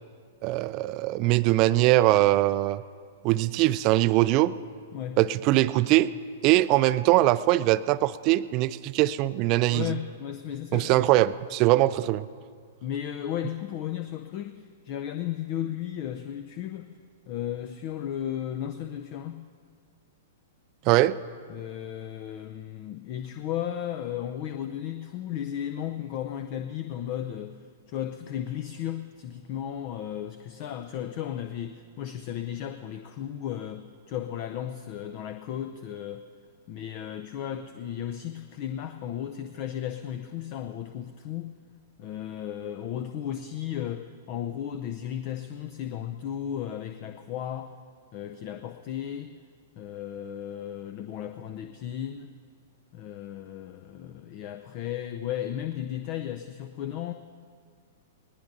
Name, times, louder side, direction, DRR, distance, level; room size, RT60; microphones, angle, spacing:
voice 1, 0.4-2.8 3.2-4.5 5.2-6.1 6.4-9.9 10.7-12.3 20.9-21.2, right 16 dB, 40° right, 16 dB, 0.4 m, -22 dB
voice 2, 4.9-5.2 9.7-11.1 12.8-16.9 17.3-19.4 21.5-27.6 27.9-36.2 36.7-41.5 42.0-47.7 48.1-49.3 49.8-52.3 52.9-57.1, left 10 dB, 45° left, 9 dB, 0.6 m, -35 dB
20.0 x 19.5 x 2.7 m, 2.1 s
figure-of-eight pair, 105°, 0 cm